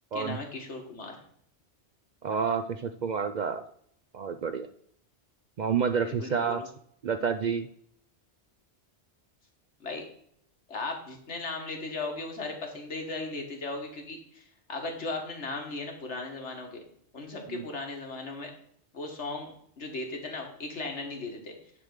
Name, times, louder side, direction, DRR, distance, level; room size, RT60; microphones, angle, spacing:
voice 1, 0.1-1.2 6.0-6.7 9.8-10.1 10.7-16.8 17.1-18.5 18.9-21.6, left 3 dB, 85° left, 2 dB, 1.8 m, -37 dB
voice 2, 2.2-3.6 4.1-4.7 5.6-6.6 7.0-7.7 17.5-17.6, right 6 dB, 60° right, 9 dB, 0.5 m, -29 dB
9.8 x 3.6 x 6.4 m, 0.66 s
omnidirectional pair, 1.1 m